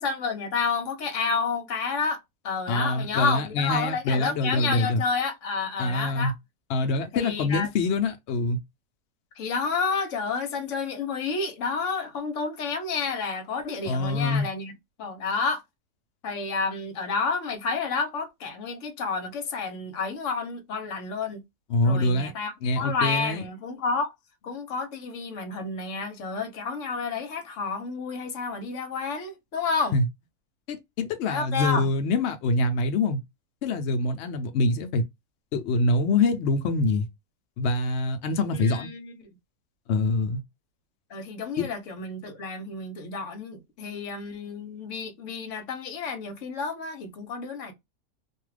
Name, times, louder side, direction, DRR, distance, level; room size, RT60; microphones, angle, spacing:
voice 1, 0.0-6.3 7.1-7.7 9.4-14.7 15.0-15.6 16.2-21.4 21.8-24.1 24.4-29.9 31.3-31.9 38.5-39.3 41.1-47.7, left 4 dB, 60° left, 0.9 m, -30 dB
voice 2, 2.7-5.0 5.8-6.3 6.7-8.6 13.9-14.5 21.7-22.3 22.6-23.4 29.9-30.0 30.7-33.2 33.6-35.0 35.5-37.1 37.6-38.9 39.9-40.4 41.6-41.7, left 2 dB, 80° left, 0.6 m, -25 dB
2.7 x 2.3 x 3.2 m
omnidirectional pair, 1.7 m